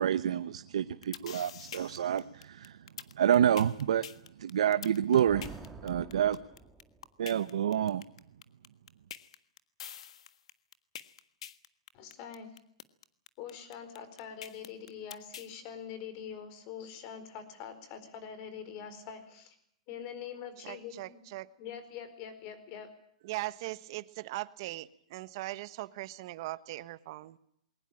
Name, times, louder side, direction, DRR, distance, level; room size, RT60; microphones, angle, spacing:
voice 1, 0.0-2.2 2.5-2.7 3.2-4.0 4.4-5.6 5.8-6.4 7.2-8.0, right 9 dB, 80° right, 11 dB, 0.9 m, -28 dB
sound 1, 0.8-15.5, left 9 dB, 75° left, 1.5 m, -45 dB
sound 2, 5.2-7.2, right 3 dB, 5° right, 1.9 m, -47 dB
voice 2, 11.9-12.5 13.4-19.6 19.9-21.2 21.6-22.9, left 8 dB, 35° left, 12 dB, 4.5 m, -44 dB
voice 3, 20.6-21.5 23.2-27.4, right 18 dB, 45° right, 14 dB, 1.2 m, -40 dB
21.5 x 19.5 x 8.9 m, 0.69 s
hypercardioid pair, 160°, 3 cm